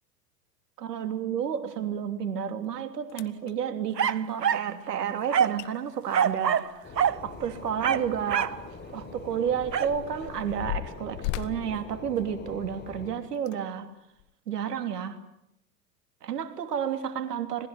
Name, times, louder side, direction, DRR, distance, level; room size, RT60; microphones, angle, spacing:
voice 1, 0.8-6.8 7.2-8.6 8.9-13.9 14.5-15.2 16.2-17.7, right 8 dB, 75° right, 9 dB, 3.1 m, -31 dB
sound 1, 2.6-2.7 3.1-3.5 5.2-5.3 5.6-5.7 6.0-7.8 8.2-8.3 9.0-12.8 13.3-13.6 14.2-14.3, left 17 dB, 50° left, 1.4 m, -38 dB
sound 2, 4.0-4.7 5.3-5.6 6.1-6.7 7.0-7.2 7.8-8.6 9.7-10.0, right 8 dB, 90° right, 0.9 m, -25 dB
sound 3, 6.8-13.2, left 3 dB, 20° left, 5.4 m, -44 dB
26.5 x 20.5 x 9.6 m, 0.81 s
hypercardioid pair, 95°, 49 cm